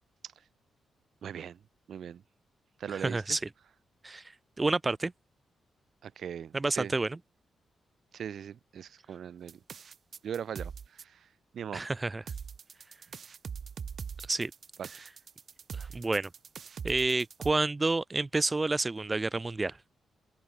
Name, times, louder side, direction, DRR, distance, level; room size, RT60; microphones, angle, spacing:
voice 1, 1.2-1.6 1.9-2.2 2.8-3.2 6.0-6.9 8.1-9.6 10.2-11.3 11.5-11.8 14.8-14.9, right 8 dB, 70° right, 3.9 m, -40 dB
voice 2, 2.9-3.4 4.0-4.3 4.6-5.1 6.5-7.2 11.7-12.2 14.3-14.5 15.7-16.3 16.8-19.8, right 3 dB, 20° right, 1.6 m, -29 dB
sound 1, 9.5-11.0 12.3-17.5, right 6 dB, 50° right, 7.5 m, -42 dB
open air
cardioid pair, 95°, 0 cm